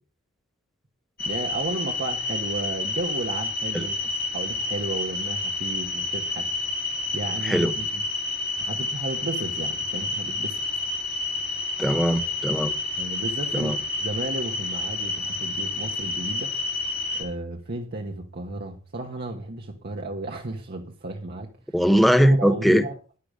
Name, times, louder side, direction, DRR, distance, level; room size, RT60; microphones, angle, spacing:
sound 1, 1.2-17.2, left 2 dB, 50° left, 2.7 m, -29 dB
voice 1, 1.2-6.5 7.1-8.0 8.6-10.6 13.0-13.7 14.0-16.5 17.1-21.5 22.2-22.9, right 2 dB, 50° right, 1.3 m, -33 dB
voice 2, 11.8-12.7 13.5-13.8 21.7-22.8, equal, ahead, 1.0 m, -20 dB
11.5 x 10.5 x 5.1 m
head